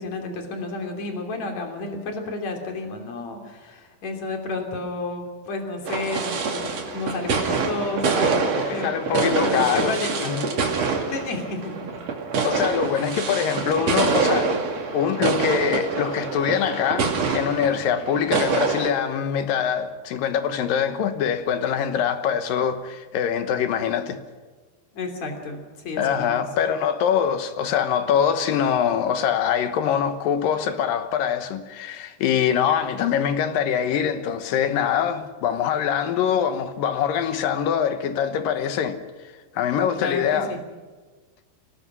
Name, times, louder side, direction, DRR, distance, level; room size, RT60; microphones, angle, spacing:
voice 1, 0.0-8.4 8.7-10.3 11.1-11.9 12.3-12.6 22.6-22.7 24.9-26.4 40.0-40.6, left 3 dB, 45° left, 4.1 m, -31 dB
sound 1, 5.9-18.9, right 4 dB, 45° right, 3.2 m, -25 dB
voice 2, 8.6-10.5 12.4-14.6 14.9-24.2 26.0-39.0 39.5-40.6, left 8 dB, 70° left, 2.6 m, -24 dB
24.5 x 18.0 x 6.2 m
omnidirectional pair, 4.6 m